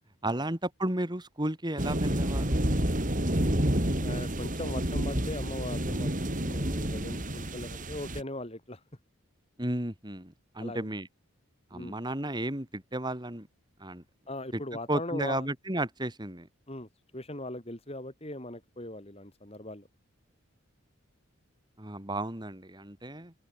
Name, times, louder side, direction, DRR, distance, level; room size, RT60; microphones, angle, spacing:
voice 1, 0.2-2.6 9.6-11.1 11.7-13.5 13.8-14.0 14.5-14.6 14.9-16.5 21.8-23.3, right 1 dB, 20° right, 2.4 m, -33 dB
sound 1, 1.8-8.2, right 1 dB, 35° right, 3.3 m, -29 dB
voice 2, 3.4-8.8 10.6-10.9 11.7-12.0 14.3-15.5 16.7-19.9, left 1 dB, 30° left, 3.1 m, -40 dB
open air
head